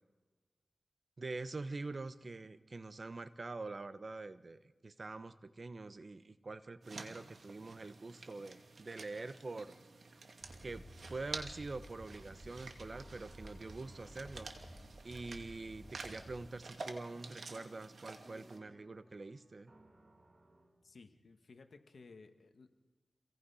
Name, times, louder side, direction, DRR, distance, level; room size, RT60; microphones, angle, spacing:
voice 1, 1.2-9.8 10.6-14.5 15.0-19.7, right 3 dB, 50° right, 12 dB, 1.1 m, -45 dB
sound 1, 6.8-18.6, right 3 dB, 75° right, 2.3 m, -51 dB
sound 2, 10.4-16.5, equal, 15° right, 3.3 m, -54 dB
sound 3, 12.9-21.3, right 1 dB, 35° right, 2.7 m, -66 dB
voice 2, 20.8-22.7, left 4 dB, 75° left, 8 dB, 1.6 m, -57 dB
27.0 x 17.5 x 5.7 m, 1.3 s
cardioid pair, 55°, 0 cm